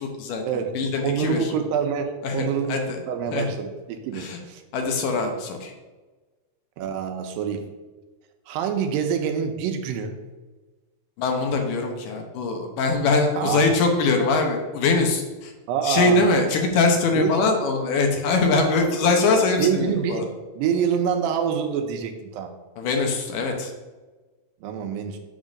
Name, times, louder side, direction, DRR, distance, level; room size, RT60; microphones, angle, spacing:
voice 1, 0.0-1.5 2.2-3.0 3.3-3.4 4.1-4.4 4.7-5.7 11.2-15.5 15.8-20.2 22.8-23.7, left 3 dB, 75° left, 3 dB, 2.4 m, -22 dB
voice 2, 1.0-2.8 3.1-4.6 6.8-7.6 8.5-10.1 13.4-13.7 15.7-16.2 17.2-17.4 19.6-22.5 24.6-25.2, right 7 dB, 80° right, 5 dB, 2.4 m, -26 dB
8.9 x 3.7 x 6.4 m, 1.2 s
omnidirectional pair, 4.1 m